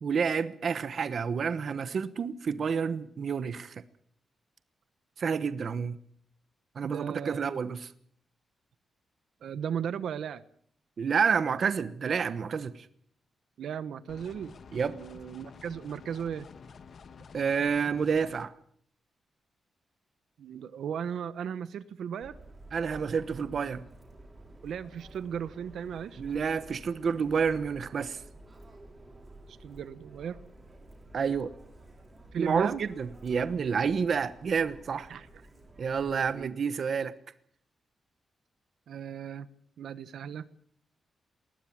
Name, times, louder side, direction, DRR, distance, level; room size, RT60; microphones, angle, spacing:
voice 1, 0.0-3.8 5.2-6.0 6.7-7.9 11.0-12.9 14.7-15.0 17.3-18.5 22.7-23.8 26.2-28.2 31.1-31.5 32.4-35.1 35.8-37.1, right 6 dB, 45° right, 1.1 m, -29 dB
voice 2, 6.8-7.5 9.4-10.4 13.6-14.6 14.8-16.5 20.4-22.4 24.6-26.2 29.5-30.4 32.3-32.8 35.1-35.3 36.3-36.6 38.9-39.5 39.8-40.5, right 8 dB, 80° right, 1.1 m, -36 dB
sound 1, 14.1-18.5, left 5 dB, 45° left, 1.5 m, -50 dB
Subway metro underground, 22.2-36.5, right 2 dB, 20° right, 5.6 m, -52 dB
20.5 x 19.0 x 8.7 m
wide cardioid pair, 175°, 0 cm